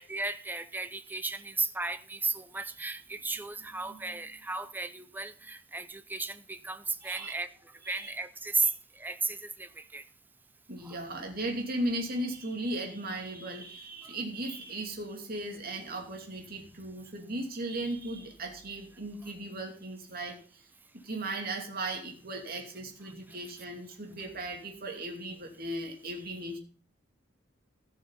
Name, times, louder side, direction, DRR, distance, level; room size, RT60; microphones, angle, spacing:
voice 1, 0.0-7.5 7.9-10.0 10.8-11.0 23.3-23.4, right 3 dB, 10° right, 11 dB, 0.6 m, -35 dB
voice 2, 3.8-4.2 7.0-7.3 7.8-8.1 8.6-8.7 10.7-20.6 21.0-26.6, right 1 dB, 50° right, 2 dB, 2.7 m, -37 dB
14.5 x 6.3 x 5.7 m, 0.41 s
head